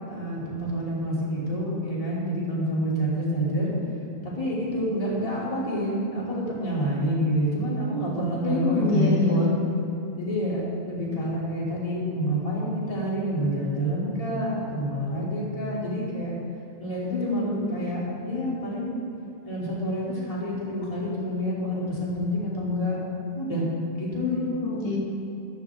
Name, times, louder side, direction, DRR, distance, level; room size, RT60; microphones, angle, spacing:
voice 1, 0.1-3.7 4.2-9.6 10.2-16.3 16.8-19.0 19.4-23.0 23.3-23.7 23.9-24.4, equal, 10° left, -6 dB, 2.5 m, -28 dB
voice 2, 8.4-9.4 17.1-17.7 24.2-25.0, left 3 dB, 80° left, -3 dB, 3.3 m, -26 dB
13.5 x 13.0 x 3.6 m, 2.9 s
omnidirectional pair, 3.4 m